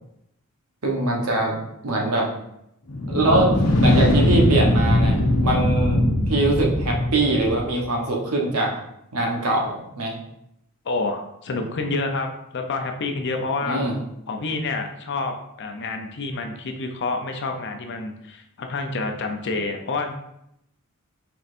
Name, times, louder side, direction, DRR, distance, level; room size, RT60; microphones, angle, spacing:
voice 1, 0.8-1.6 1.8-2.3 3.1-8.7 9.1-10.2 13.6-14.0, right 2 dB, 75° right, -1 dB, 1.0 m, -23 dB
sound 1, 2.9-7.8, left 1 dB, 80° left, 0.9 m, -20 dB
voice 2, 10.8-13.8 14.3-20.1, left 3 dB, 55° left, 4 dB, 0.6 m, -28 dB
4.5 x 4.2 x 2.6 m, 0.79 s
head